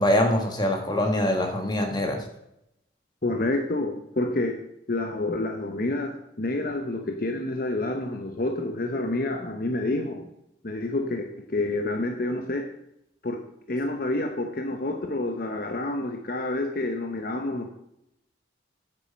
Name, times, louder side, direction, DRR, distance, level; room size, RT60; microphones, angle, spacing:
voice 1, 0.0-2.2, left 1 dB, 20° left, 3 dB, 1.6 m, -23 dB
voice 2, 3.2-4.6 4.9-10.3 10.6-12.7 13.2-13.4 13.7-17.7, left 2 dB, 50° left, 4 dB, 0.8 m, -28 dB
8.9 x 8.4 x 5.2 m, 0.81 s
head